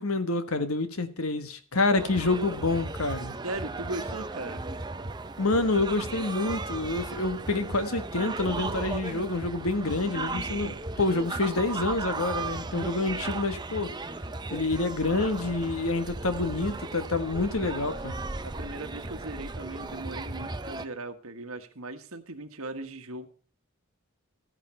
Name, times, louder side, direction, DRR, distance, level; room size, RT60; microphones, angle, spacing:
voice 1, 0.0-3.3 5.4-13.9 14.5-18.2, left 2 dB, 75° left, 1.4 m, -28 dB
sound 1, 2.0-20.9, right 3 dB, 20° right, 0.6 m, -36 dB
voice 2, 3.4-4.6 18.4-23.3, right 2 dB, 75° right, 1.6 m, -38 dB
14.0 x 10.0 x 4.4 m
head